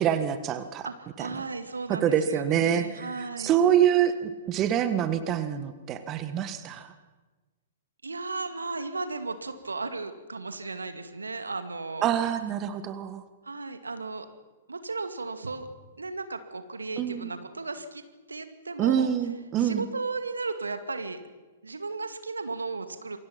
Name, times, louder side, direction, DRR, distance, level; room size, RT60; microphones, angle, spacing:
voice 1, 0.0-0.9 1.2-1.3 1.9-3.1 3.4-6.9 12.0-13.2 17.0-17.3 18.8-19.9, right 9 dB, 30° right, 11 dB, 1.6 m, -26 dB
voice 2, 0.8-3.6 8.0-12.0 13.4-14.3 14.7-15.7 16.0-18.0 18.3-19.1 19.6-21.2 21.6-23.2, right 3 dB, 80° right, 9 dB, 2.2 m, -35 dB
27.5 x 23.5 x 6.0 m, 1.3 s
figure-of-eight pair, 110°, 0 cm